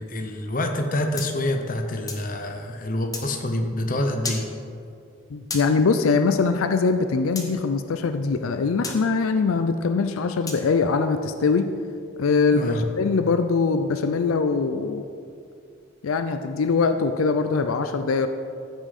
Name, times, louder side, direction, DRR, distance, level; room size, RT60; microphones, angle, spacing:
voice 1, 0.1-4.5 12.5-12.8, left 1 dB, 40° left, 4 dB, 0.8 m, -26 dB
sound 1, 1.2-2.3 3.1-3.3 4.2-4.5 5.5-5.7 7.3-7.5 8.8-9.0 10.5-10.7, left 3 dB, 15° left, 0.9 m, -33 dB
voice 2, 5.3-11.7 12.2-15.0 16.0-18.3, left 4 dB, 85° left, 9 dB, 0.5 m, -22 dB
14.0 x 6.3 x 4.2 m, 2.4 s
head